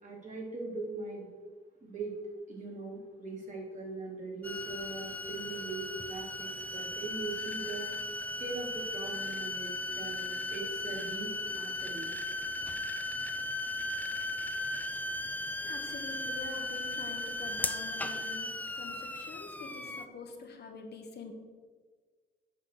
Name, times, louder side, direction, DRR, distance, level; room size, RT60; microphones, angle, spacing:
voice 1, 0.0-1.3 1.8-2.1 2.5-7.9 8.4-9.7 10.0-12.1, right 3 dB, 40° right, -3 dB, 2.9 m, -41 dB
sound 1, 4.4-20.1, left 2 dB, 10° left, 0.5 m, -37 dB
voice 2, 15.6-21.3, left 4 dB, 55° left, 3 dB, 1.3 m, -46 dB
8.9 x 4.3 x 6.5 m, 1.5 s
cardioid pair, 90°, 20 cm